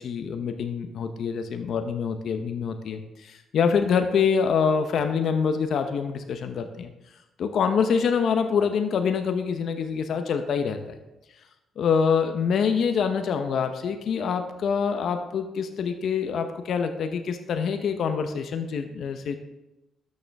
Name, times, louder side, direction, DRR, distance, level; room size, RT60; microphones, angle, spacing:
voice 1, 0.0-6.9 7.4-11.0 11.8-19.4, left 6 dB, 65° left, 7 dB, 0.8 m, -25 dB
12.0 x 6.6 x 3.5 m, 0.98 s
cardioid pair, 90°, 0 cm